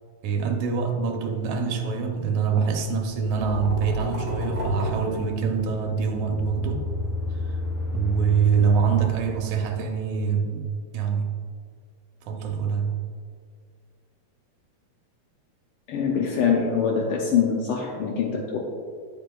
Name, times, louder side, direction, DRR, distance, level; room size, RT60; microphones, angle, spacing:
voice 1, 0.2-6.9 7.3-7.6 7.9-11.3 12.2-13.0, right 6 dB, 85° right, 4 dB, 2.2 m, -25 dB
sound 1, 3.0-5.9, equal, 20° left, 1.3 m, -31 dB
sound 2, 4.0-10.3, left 2 dB, 50° left, 2.4 m, -34 dB
voice 2, 15.9-18.6, left 6 dB, 85° left, -1 dB, 1.2 m, -24 dB
9.0 x 8.5 x 2.3 m, 2.1 s
omnidirectional pair, 3.3 m